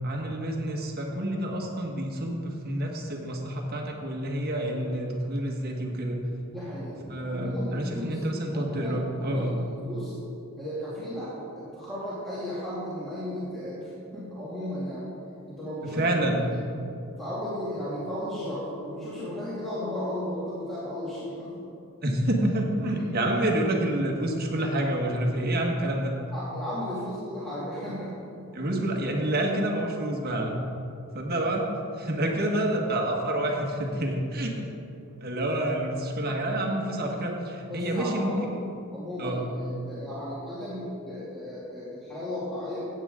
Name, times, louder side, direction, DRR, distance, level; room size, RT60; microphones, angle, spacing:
voice 1, 0.0-6.2 7.1-9.6 15.8-16.4 22.0-26.1 28.5-30.6 31.1-31.7 32.0-34.7 35.2-38.6 39.2-39.4, right 1 dB, 45° right, 1 dB, 1.5 m, -28 dB
voice 2, 6.5-8.2 8.5-10.2 10.6-15.1 15.5-16.0 16.4-16.6 17.2-21.7 26.3-28.3 32.5-32.6 37.7-38.4 38.9-42.9, left 1 dB, ahead, -11 dB, 2.4 m, -35 dB
16.0 x 8.2 x 3.7 m, 2.6 s
head